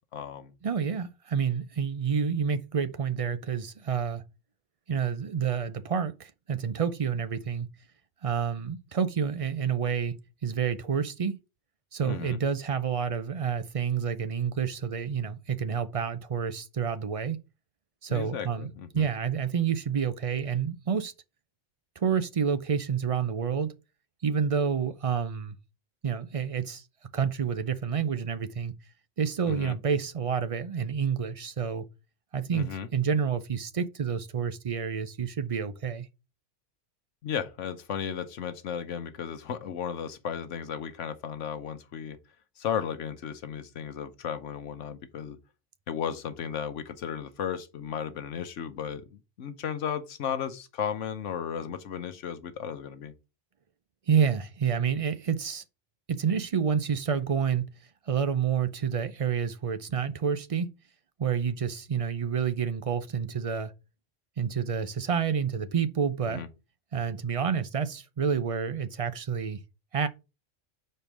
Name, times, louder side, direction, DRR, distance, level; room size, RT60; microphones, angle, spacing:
voice 1, 0.1-0.5 12.0-12.4 18.1-19.1 29.5-29.7 32.5-32.9 37.2-42.2 42.6-45.4 45.9-53.1 66.3-66.5, left 8 dB, 75° left, 1.1 m, -35 dB
voice 2, 0.6-4.2 4.9-7.7 8.2-11.4 11.9-17.4 18.0-21.1 22.0-23.7 24.2-25.5 26.0-26.8 27.1-28.7 29.2-31.9 32.3-36.1 54.1-55.6 56.1-57.7 58.1-60.7 61.2-63.7 64.4-66.4 66.9-69.6 69.9-70.1, right 7 dB, 55° right, 0.4 m, -29 dB
5.1 x 4.4 x 6.0 m
omnidirectional pair, 1.3 m